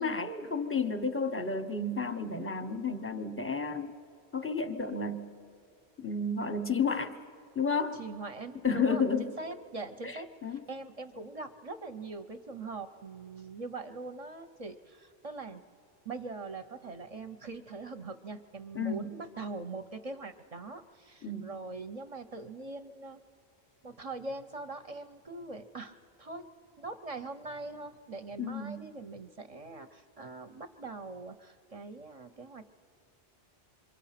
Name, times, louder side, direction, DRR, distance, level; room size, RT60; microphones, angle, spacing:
voice 1, 0.0-3.9 4.3-5.4 6.0-7.2 7.5-8.0 8.6-9.3 10.0-10.6 18.7-19.2 21.2-21.5 28.4-28.9, left 4 dB, 15° left, 9 dB, 0.7 m, -32 dB
voice 2, 8.0-10.3 10.7-15.6 16.0-23.2 23.8-26.5 26.8-32.7, right 3 dB, 40° right, 8 dB, 0.6 m, -42 dB
27.0 x 23.5 x 5.8 m, 2.3 s
omnidirectional pair, 1.1 m